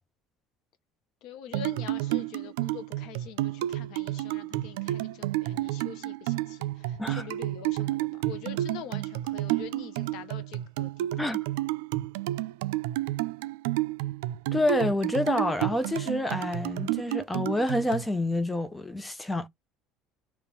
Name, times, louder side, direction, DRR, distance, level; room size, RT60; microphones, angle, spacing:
voice 1, 1.2-11.1, left 9 dB, 65° left, 0.9 m, -44 dB
sound 1, 1.5-18.0, right 16 dB, 90° right, 0.3 m, -31 dB
voice 2, 14.5-19.5, left 1 dB, 10° left, 0.5 m, -28 dB
3.5 x 3.0 x 4.7 m
cardioid pair, 120°, 0 cm